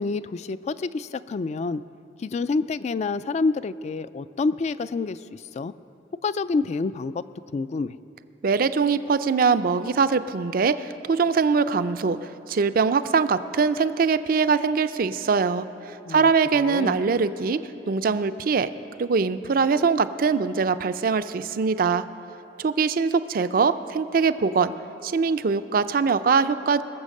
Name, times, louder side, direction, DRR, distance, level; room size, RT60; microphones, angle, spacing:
voice 1, 0.0-1.8 2.2-5.7 6.2-7.2 7.5-8.0 16.1-17.0, left 4 dB, 40° left, 15 dB, 0.3 m, -28 dB
voice 2, 8.4-17.6 17.9-18.7 19.0-22.0 22.6-24.7 25.0-26.8, right 5 dB, 55° right, 12 dB, 0.4 m, -22 dB
21.5 x 7.1 x 6.5 m, 2.8 s
head